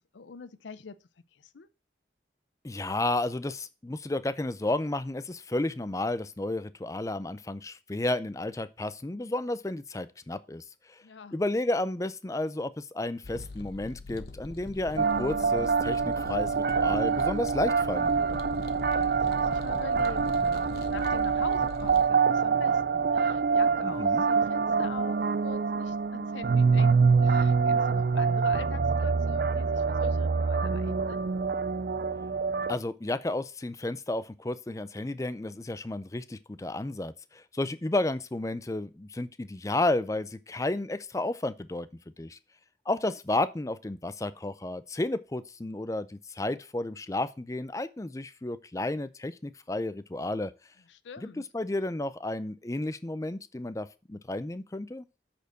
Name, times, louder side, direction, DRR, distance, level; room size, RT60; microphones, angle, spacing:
voice 1, 0.1-1.0 1.3-1.7 11.0-11.4 18.9-31.2 50.9-51.4, left 5 dB, 85° left, 0.6 m, -44 dB
voice 2, 2.6-11.0 11.3-18.4 23.8-24.3 32.7-42.4 42.9-50.5 51.2-55.0, left 2 dB, 15° left, 0.4 m, -32 dB
sound 1, 13.2-22.1, left 2 dB, 55° left, 1.0 m, -41 dB
sound 2, 15.0-32.8, right 5 dB, 55° right, 0.4 m, -25 dB
8.1 x 4.4 x 6.3 m
head